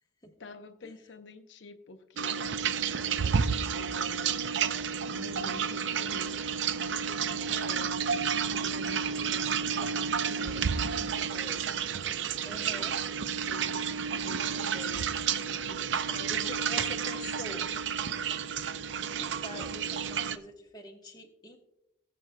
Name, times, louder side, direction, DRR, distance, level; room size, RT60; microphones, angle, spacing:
voice 1, 0.4-4.4 5.1-8.2 8.4-11.7 12.7-12.8 13.5-15.1 15.5-15.8 16.1-16.5 17.4-17.5 19.1-19.7, left 2 dB, 85° left, 7 dB, 0.7 m, -48 dB
sound 1, 2.2-20.4, right 7 dB, 85° right, 0.5 m, -31 dB
voice 2, 12.4-13.0 16.3-17.7 19.0-19.1 19.4-21.6, left 1 dB, 20° left, 1 dB, 1.1 m, -44 dB
18.5 x 7.6 x 2.2 m, 0.84 s
head